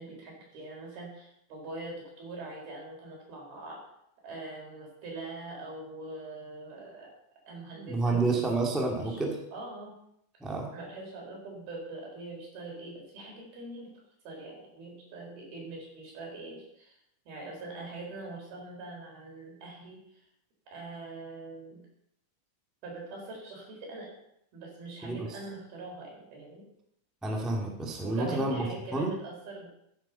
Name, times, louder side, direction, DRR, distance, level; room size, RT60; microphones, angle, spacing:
voice 1, 0.0-3.8 4.2-7.1 7.5-9.9 10.7-13.9 14.2-17.0 17.3-20.0 20.7-21.8 22.8-24.1 24.5-26.6 28.0-29.7, right 2 dB, 85° right, -1 dB, 6.2 m, -43 dB
voice 2, 7.7-9.3 10.4-10.7 25.0-25.4 27.2-28.6 28.9-29.2, right 3 dB, ahead, 1 dB, 1.0 m, -29 dB
14.5 x 8.7 x 5.7 m, 0.74 s
omnidirectional pair, 4.2 m